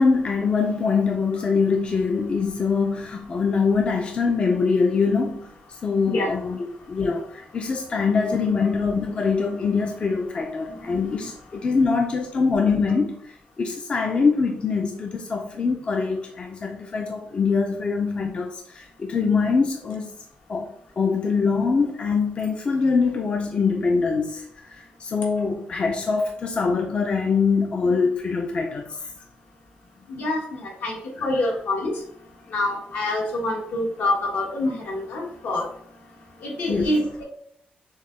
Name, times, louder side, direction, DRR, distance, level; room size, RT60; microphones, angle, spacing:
voice 1, 0.0-5.5 5.8-20.1 20.5-20.7 21.0-29.0 31.2-31.3 36.7-37.0, left 4 dB, 35° left, 3 dB, 0.4 m, -23 dB
voice 2, 30.1-31.9 32.5-35.7 36.4-37.2, left 2 dB, 75° left, -1 dB, 1.4 m, -26 dB
6.3 x 2.2 x 3.2 m, 0.66 s
wide cardioid pair, 160°, 3 cm